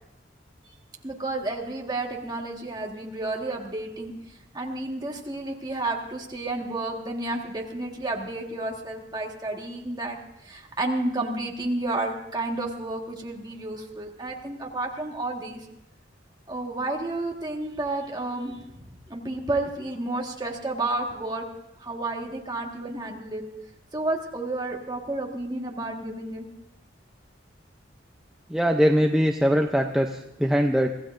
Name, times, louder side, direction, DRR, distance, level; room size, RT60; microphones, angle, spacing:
voice 1, 1.0-15.6 16.5-18.6 19.1-21.4 21.8-23.4 23.9-26.5, right 2 dB, 20° right, 1 dB, 1.6 m, -31 dB
voice 2, 28.5-30.9, equal, 5° right, 3 dB, 0.6 m, -22 dB
25.0 x 15.5 x 2.6 m, 0.88 s
head